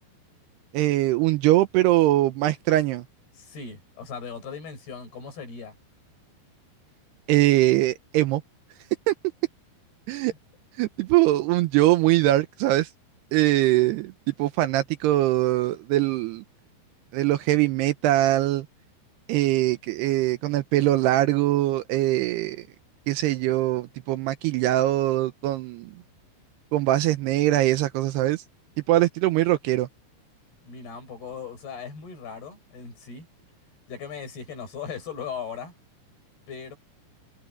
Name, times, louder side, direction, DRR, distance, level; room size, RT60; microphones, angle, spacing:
voice 1, 0.7-3.0 7.3-8.4 9.1-9.2 10.1-10.3 10.8-12.9 13.3-14.1 14.4-16.4 17.1-18.7 19.3-22.7 23.1-25.9 26.7-28.4 28.9-29.9, right 15 dB, 75° right, 2.6 m, -22 dB
voice 2, 3.3-5.8 10.3-10.4 30.6-33.3 33.9-35.7 36.5-36.8, left 6 dB, 60° left, 8.4 m, -38 dB
omnidirectional pair, 5.1 m